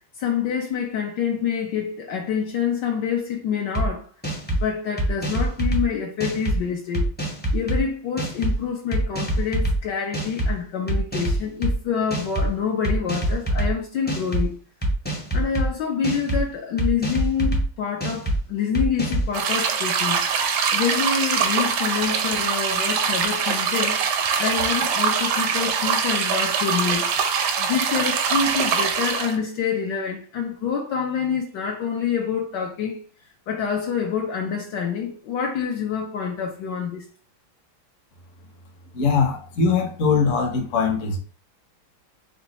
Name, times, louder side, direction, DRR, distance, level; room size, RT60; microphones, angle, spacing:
voice 1, 0.2-4.1 4.5-7.1 7.5-14.6 15.3-20.2 20.7-24.0 24.4-27.1 27.6-33.0 33.5-37.1, left 7 dB, 70° left, 1.2 m, -27 dB
sound 1, 3.7-3.9 4.2-4.6 5.0-5.8 6.2-6.6 6.9-7.8 8.2-8.5 8.9-9.8 10.1-10.5 10.9-11.7 12.1-12.5 12.8-13.7 14.1-14.4 14.8-15.7 16.0-16.4 16.8-17.6 18.0-18.4 18.7-19.3, right 1 dB, 10° left, 0.5 m, -24 dB
sound 2, 19.3-29.4, right 6 dB, 70° right, 1.1 m, -23 dB
voice 2, 38.9-41.2, left 5 dB, 50° left, 1.0 m, -21 dB
5.2 x 2.3 x 4.0 m
omnidirectional pair, 2.2 m